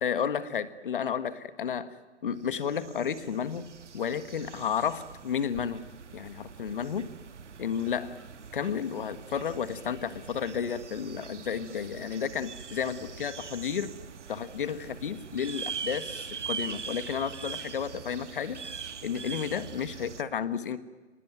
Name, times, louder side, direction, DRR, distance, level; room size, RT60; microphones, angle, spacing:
voice 1, 0.0-3.6 3.9-5.9 6.1-7.1 7.6-8.2 8.5-13.9 14.3-18.6 19.0-20.8, left 7 dB, 50° left, 13 dB, 1.6 m, -32 dB
sound 1, 2.4-20.2, right 6 dB, 85° right, 1.5 m, -42 dB
25.0 x 19.5 x 9.3 m, 1.3 s
hypercardioid pair, 165°, 35 cm